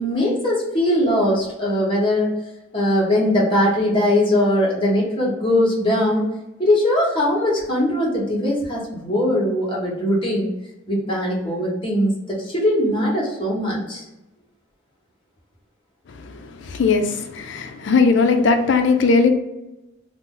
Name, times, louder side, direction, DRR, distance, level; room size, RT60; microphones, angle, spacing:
voice 1, 0.0-2.3 2.7-6.3 6.6-10.5 10.9-14.0, left 1 dB, 25° left, 1.1 m, -20 dB
voice 2, 16.1-19.3, left 4 dB, 65° left, 0.4 m, -19 dB
2.7 x 2.1 x 3.7 m
head